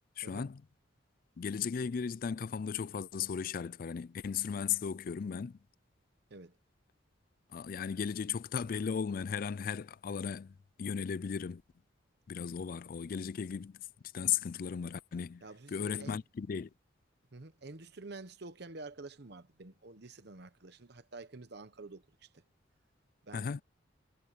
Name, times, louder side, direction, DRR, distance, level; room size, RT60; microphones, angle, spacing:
voice 1, 0.2-0.6 1.4-5.6 7.5-11.6 12.3-13.8 14.1-15.4 15.7-16.7 23.3-23.6, left 7 dB, 50° left, 0.3 m, -36 dB
voice 2, 15.4-16.2 17.3-22.4 23.2-23.5, right 3 dB, 55° right, 1.0 m, -49 dB
head